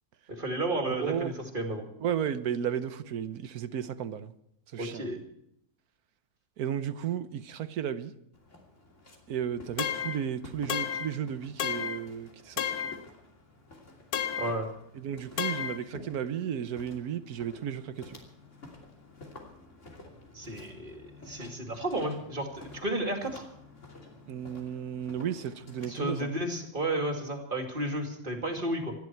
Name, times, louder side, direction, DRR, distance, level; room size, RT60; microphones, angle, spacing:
voice 1, 0.3-1.9 4.8-5.2 14.4-14.7 20.3-23.4 25.8-28.9, right 1 dB, 35° right, 3 dB, 2.7 m, -32 dB
voice 2, 0.9-1.4 2.0-4.3 4.7-5.2 6.6-8.1 9.3-12.9 14.9-18.2 24.3-26.3, right 9 dB, 85° right, 12 dB, 1.4 m, -34 dB
Walk footsteps, 8.3-26.0, left 2 dB, 55° left, 3.2 m, -51 dB
sound 1, 9.8-10.2 10.7-11.1 11.6-12.0 12.6-13.0 14.1-14.6 15.4-15.8, left 8 dB, 85° left, 1.3 m, -32 dB
26.0 x 11.0 x 4.6 m, 0.76 s
omnidirectional pair, 1.6 m